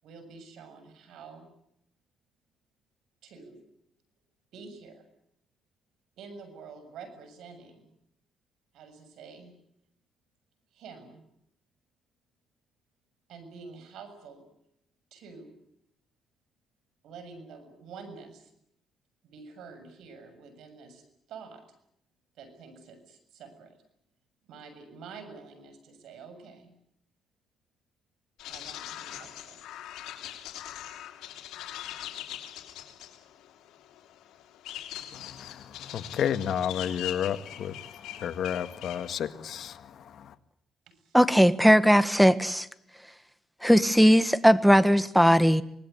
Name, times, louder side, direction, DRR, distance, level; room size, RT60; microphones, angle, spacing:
voice 1, 0.0-1.5 3.2-3.6 4.5-5.1 6.2-7.9 8.7-9.5 10.7-11.2 13.3-14.5 15.1-15.6 17.0-18.5 19.2-21.0 21.3-21.6 22.4-23.7 24.5-26.7 28.5-29.6 40.9-41.2, right 5 dB, 80° right, 7.0 m, -47 dB
sound 1, 28.4-39.1, left 12 dB, 90° left, 3.1 m, -42 dB
voice 2, 35.1-40.3, left 9 dB, 70° left, 1.8 m, -32 dB
voice 3, 41.1-42.7 43.6-45.6, equal, ahead, 1.6 m, -19 dB
25.5 x 20.0 x 9.5 m
cardioid pair, 90°, 0 cm